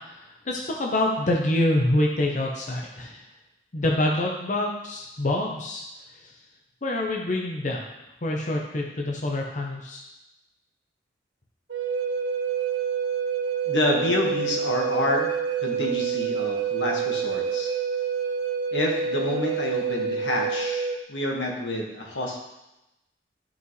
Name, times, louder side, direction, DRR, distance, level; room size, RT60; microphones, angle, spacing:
voice 1, 0.0-3.2 3.7-5.8 6.1-6.3 6.8-7.9 8.2-10.0, left 1 dB, 40° left, 0 dB, 0.8 m, -26 dB
Wind instrument woodwind instrument, 11.7-21.0, right 7 dB, 85° right, 1.0 m, -27 dB
voice 2, 13.6-15.3 15.6-17.7 18.7-22.4, left 1 dB, 80° left, -1 dB, 1.6 m, -28 dB
13.5 x 5.5 x 3.2 m, 0.96 s
head